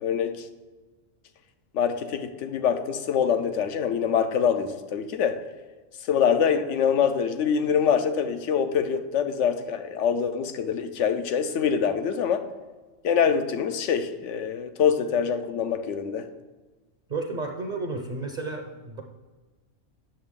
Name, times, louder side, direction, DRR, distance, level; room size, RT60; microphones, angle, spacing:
voice 1, 0.0-0.5 1.7-5.4 6.1-12.5 13.0-16.3, left 7 dB, 80° left, 9 dB, 1.0 m, -25 dB
voice 2, 17.1-19.0, right 3 dB, 45° right, 3 dB, 0.7 m, -32 dB
8.8 x 6.6 x 3.6 m, 1.3 s
omnidirectional pair, 1.3 m